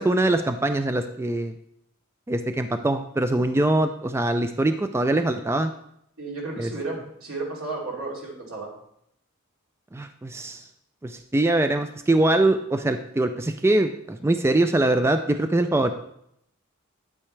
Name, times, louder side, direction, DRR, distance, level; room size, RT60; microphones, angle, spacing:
voice 1, 0.0-1.5 2.3-5.7 6.6-6.7 9.9-10.6 11.0-15.9, right 2 dB, 10° right, 8 dB, 0.3 m, -23 dB
voice 2, 6.2-8.7, right 3 dB, 75° right, -3 dB, 2.9 m, -33 dB
9.3 x 8.7 x 3.3 m, 0.74 s
head